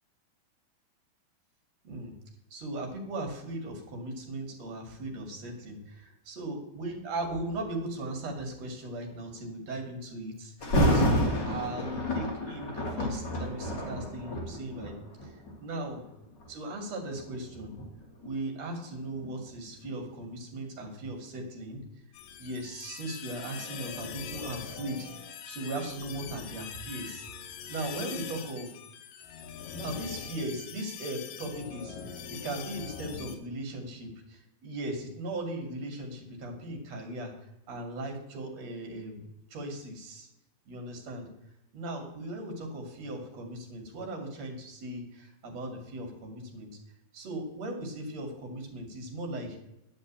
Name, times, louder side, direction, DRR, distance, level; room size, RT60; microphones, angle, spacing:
voice 1, 2.5-14.9 15.2-15.3 15.6-16.0 16.5-17.7 18.2-21.8 22.4-25.1 25.5-27.3 27.7-28.8 29.7-37.3 37.7-40.3 40.7-41.3 41.7-46.7 47.1-49.6, right 1 dB, 50° right, 3 dB, 3.2 m, -38 dB
Thunder, 10.6-15.6 16.2-16.5 17.1-19.9 20.3-20.4, equal, 35° left, 2.3 m, -29 dB
sound 1, 22.1-33.4, left 7 dB, 75° left, 2.6 m, -42 dB
11.5 x 5.3 x 8.7 m, 0.87 s
omnidirectional pair, 4.1 m